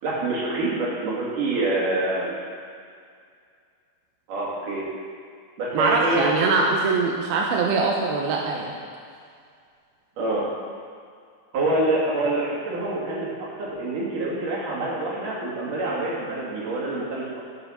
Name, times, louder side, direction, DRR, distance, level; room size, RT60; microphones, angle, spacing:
voice 1, 0.0-2.3 4.3-4.8 5.6-6.3 10.2-10.4 11.5-13.3 13.6-17.3, right 2 dB, 50° right, -5 dB, 3.6 m, -26 dB
voice 2, 5.7-8.7, right 4 dB, 80° right, -1 dB, 2.2 m, -22 dB
14.0 x 8.0 x 5.8 m, 2.2 s
omnidirectional pair, 5.7 m